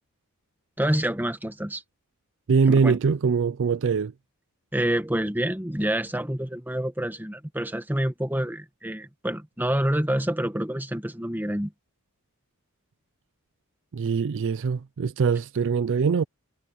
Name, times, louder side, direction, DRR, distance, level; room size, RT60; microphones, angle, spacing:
voice 1, 0.8-1.8 2.7-3.0 4.7-11.7, right 1 dB, 10° right, 1.4 m, -27 dB
voice 2, 2.5-4.1 13.9-16.2, right 5 dB, 60° right, 0.4 m, -22 dB
head